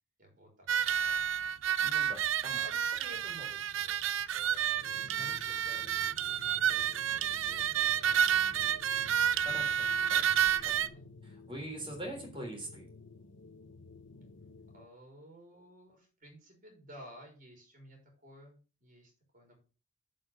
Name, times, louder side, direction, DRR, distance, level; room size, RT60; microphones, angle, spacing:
voice 1, 0.2-1.3 2.5-6.1 6.5-8.5 10.8-11.1 14.7-19.6, equal, 40° right, 2 dB, 3.9 m, -54 dB
sound 1, 0.7-10.9, right 9 dB, 65° right, 0.5 m, -30 dB
voice 2, 1.8-2.6 9.3-10.9 11.2-12.9, right 1 dB, 25° right, 0 dB, 3.3 m, -44 dB
sound 2, 4.7-14.9, left 3 dB, 60° left, 0.8 m, -53 dB
7.5 x 5.2 x 7.1 m, 0.35 s
head